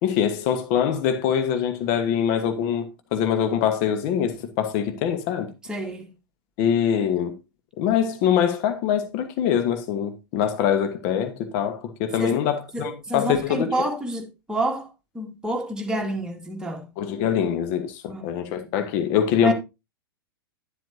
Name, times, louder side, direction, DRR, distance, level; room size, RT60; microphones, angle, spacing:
voice 1, 0.0-5.5 6.6-7.4 7.8-13.9 17.0-19.5, left 9 dB, 40° left, 1.2 m, -24 dB
voice 2, 5.7-6.1 12.2-12.4 12.7-14.9 15.1-16.9 18.1-18.7 19.4-19.5, right 1 dB, 5° right, 2.0 m, -29 dB
11.0 x 7.6 x 2.7 m
figure-of-eight pair, 95°, 12 cm